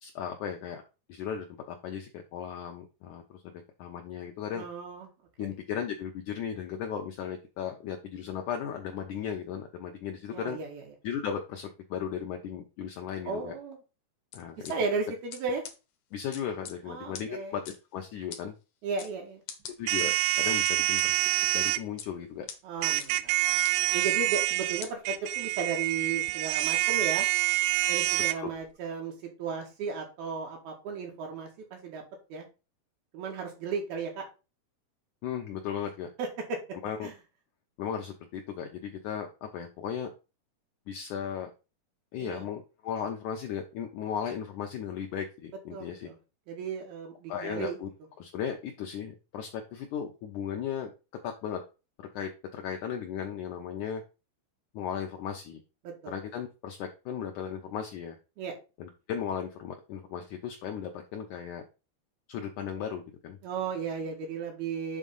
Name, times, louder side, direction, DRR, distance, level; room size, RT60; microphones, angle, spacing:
voice 1, 0.0-0.8 1.1-3.4 3.8-4.6 5.4-10.6 11.0-13.5 14.3-14.7 16.1-17.6 17.9-18.5 19.8-21.2 21.5-22.5 28.4-28.5 35.2-36.1 36.8-37.1 37.8-40.1 40.9-41.5 42.1-46.1 47.3-47.9 48.2-50.9 51.2-51.6 52.1-54.0 54.7-55.6 56.1-58.2 58.8-61.6 62.3-63.4, left 8 dB, 90° left, 3 dB, 1.7 m, -36 dB
voice 2, 4.6-5.1 5.4-5.5 10.3-10.9 13.3-13.8 14.7-15.6 16.9-17.6 18.8-19.4 22.6-23.6 23.9-27.3 27.9-29.1 29.4-32.0 32.3-32.5 33.1-34.3 36.2-36.6 37.0-37.1 42.2-42.5 45.7-46.2 46.5-47.8 55.8-56.2 58.4-58.5 63.4-65.0, right 5 dB, 70° right, 1 dB, 3.8 m, -35 dB
sound 1, 14.3-14.7 15.3-15.4 15.6-15.7 16.3-16.7 17.1-17.2 17.7-17.8 18.3-18.4 19.0-19.1 19.5-20.1 20.7-21.1 21.7-22.1 22.5-22.6 23.0-23.1 23.6-23.7 24.3-24.4 24.8-24.9, left 8 dB, 70° left, 2.3 m, -41 dB
sound 2, 19.9-21.8 22.8-28.4, right 17 dB, 85° right, 2.0 m, -27 dB
7.4 x 3.7 x 5.4 m, 0.31 s
omnidirectional pair, 4.5 m